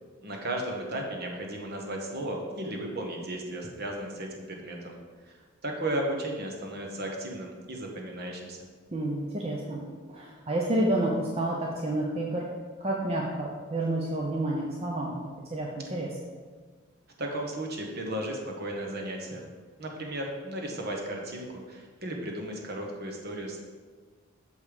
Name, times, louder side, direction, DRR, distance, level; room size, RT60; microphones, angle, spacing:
voice 1, 0.2-5.0 5.3-5.4 5.6-8.6 17.2-19.5 19.8-23.6, right 1 dB, 50° right, 1 dB, 1.2 m, -35 dB
voice 2, 8.9-9.8 10.1-12.5 12.8-15.1 15.5-16.1, right 1 dB, 30° right, -2 dB, 0.7 m, -29 dB
6.5 x 5.3 x 4.9 m, 1.5 s
head